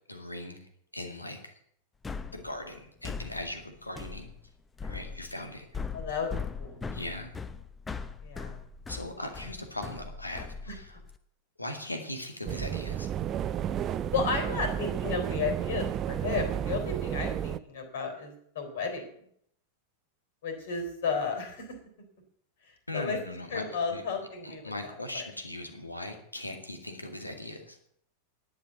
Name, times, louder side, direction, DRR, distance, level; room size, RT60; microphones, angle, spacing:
voice 1, 0.1-1.5 2.3-4.3 4.8-5.7 6.9-7.3 8.9-11.0 11.6-13.1 22.9-23.6 23.9-24.0 24.4-27.8, left 1 dB, 85° left, 5 dB, 2.1 m, -39 dB
sound 1, 2.0-11.2, left 5 dB, 15° left, 0.8 m, -40 dB
voice 2, 5.9-6.3 6.6-6.8 8.2-8.6 10.7-10.8 14.1-19.1 20.4-21.8 22.9-23.2 23.5-24.7 25.1-25.2, left 5 dB, 60° left, 6 dB, 3.7 m, -33 dB
sound 2, 12.5-17.6, right 10 dB, 30° right, 0.5 m, -32 dB
11.0 x 8.5 x 7.9 m, 0.69 s
figure-of-eight pair, 90°, 0 cm